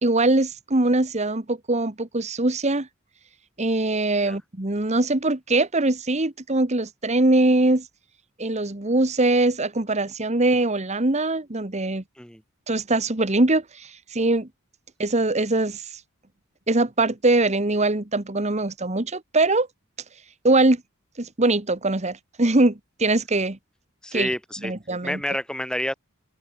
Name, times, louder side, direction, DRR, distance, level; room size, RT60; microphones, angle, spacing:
voice 1, 0.0-2.9 3.6-7.9 8.4-12.0 12.7-14.5 15.0-16.0 16.7-19.7 20.4-20.8 21.2-23.6 24.1-24.3 24.6-25.2, right 2 dB, 35° right, 1.6 m, -22 dB
voice 2, 24.0-24.7 25.0-25.9, left 1 dB, 5° left, 6.3 m, -29 dB
open air
head